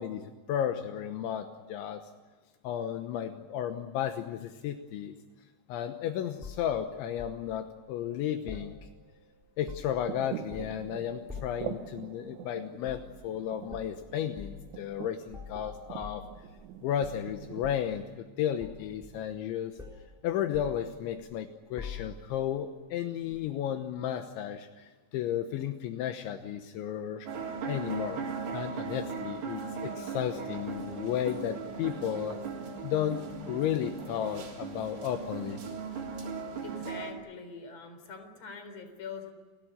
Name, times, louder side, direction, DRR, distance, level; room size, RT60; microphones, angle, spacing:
voice 1, 0.0-2.0 2.6-5.2 5.7-8.8 9.6-16.2 16.8-19.8 20.2-27.3 27.7-28.2 28.5-32.4 32.8-35.6, left 10 dB, 80° left, 7 dB, 3.4 m, -33 dB
sound 1, 6.4-7.4 8.5-9.2 9.5-10.1 10.5-10.9 11.3-11.7 12.8-13.1 13.7-13.9 14.4-14.6 15.3-16.7 17.0-18.0 18.6-19.5 19.8-20.1 20.5-21.3 21.8-22.4 23.3-23.5, left 5 dB, ahead, 2.8 m, -45 dB
sound 2, 9.9-18.2, right 11 dB, 75° right, 3.0 m, -44 dB
sound 3, 27.3-37.1, right 5 dB, 55° right, 5.4 m, -38 dB
voice 2, 36.6-39.3, left 5 dB, 35° left, 7 dB, 4.5 m, -44 dB
29.5 x 16.5 x 9.6 m, 1.4 s
omnidirectional pair, 5.5 m